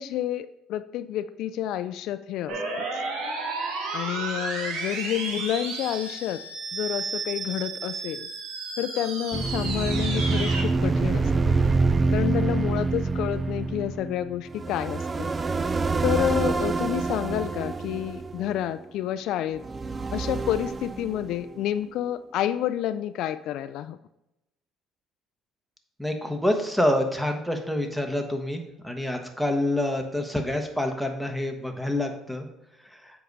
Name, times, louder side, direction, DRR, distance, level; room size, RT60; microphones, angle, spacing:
voice 1, 0.0-2.8 3.9-6.4 6.7-8.3 8.8-11.5 12.1-15.3 16.0-19.6 20.1-24.0, left 12 dB, 70° left, 12 dB, 0.3 m, -29 dB
sound 1, 2.5-10.6, right 3 dB, 80° right, 1.8 m, -32 dB
sound 2, 9.3-18.9 19.6-21.6, right 3 dB, 25° right, 0.4 m, -26 dB
voice 2, 26.0-32.5, left 1 dB, ahead, 5 dB, 1.1 m, -27 dB
7.8 x 4.7 x 5.3 m, 0.90 s
cardioid pair, 110°, 0 cm